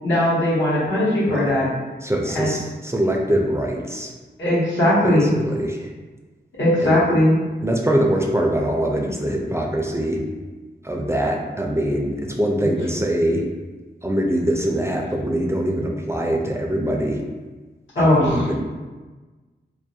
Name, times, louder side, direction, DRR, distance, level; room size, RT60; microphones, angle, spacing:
voice 1, 0.0-1.7 2.3-2.5 4.4-5.3 6.5-7.4 8.9-9.2 17.9-18.5, left 1 dB, 85° left, -9 dB, 0.9 m, -19 dB
voice 2, 2.0-4.1 5.0-5.9 6.8-7.0 7.6-10.2 10.8-13.4 14.0-17.2 18.0-18.6, right 1 dB, 15° right, 0 dB, 0.4 m, -23 dB
2.3 x 2.2 x 2.6 m, 1.3 s
cardioid pair, 45°, 19 cm